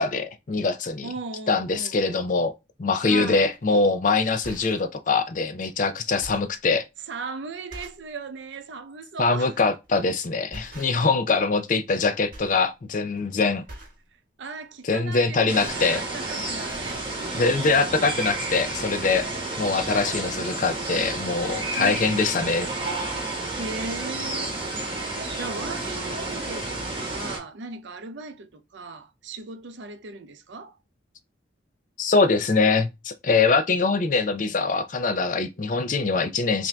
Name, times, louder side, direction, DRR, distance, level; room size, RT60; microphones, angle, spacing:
voice 1, 0.0-1.1 1.5-2.5 2.8-6.8 9.2-13.6 14.8-16.0 17.3-19.3 19.6-22.7 32.0-36.7, left 4 dB, 40° left, 0.4 m, -23 dB
voice 2, 1.0-2.3 3.0-3.5 7.1-9.6 14.4-17.5 19.8-20.3 21.8-22.5 23.6-24.5 25.4-30.8, right 3 dB, 70° right, 0.5 m, -37 dB
sound 1, 3.5-3.7 4.3-4.9 5.6-5.7 6.0-6.6 7.2-7.3 7.7-8.1 8.5-8.7 9.8-10.1 10.5-11.2 11.5-12.0 12.3-12.6 12.9-13.2 13.6-14.0 15.2-16.3 16.6-17.1 17.9-18.0 18.2-18.4, right 1 dB, 45° right, 1.5 m, -44 dB
sound 2, 15.5-27.4, right 2 dB, 25° right, 1.6 m, -31 dB
5.6 x 2.6 x 2.2 m
head